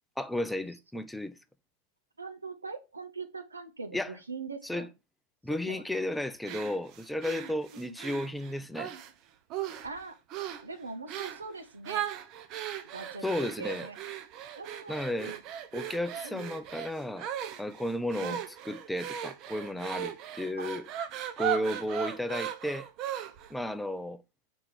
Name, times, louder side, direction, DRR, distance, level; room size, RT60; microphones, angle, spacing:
voice 1, 0.2-1.4 3.9-4.1 4.6-4.9 5.4-8.9 13.2-13.9 14.9-15.4 15.7-17.3 17.6-18.4 18.6-20.8 21.4-22.9 23.5-24.2, left 1 dB, 5° left, 0.5 m, -33 dB
voice 2, 2.2-4.9 5.5-5.9 7.7-8.0 9.8-10.2 10.6-12.1 12.9-13.2 13.6-14.0 14.4-15.4 16.2-16.4 18.2-18.4 20.6-20.7, right 4 dB, 75° right, 0.8 m, -42 dB
sound 1, 6.4-9.1 9.5-10.0 10.3-10.7 11.1-11.4 11.8-23.5, right 10 dB, 40° right, 0.6 m, -37 dB
5.0 x 4.4 x 4.6 m
figure-of-eight pair, 90°, 0 cm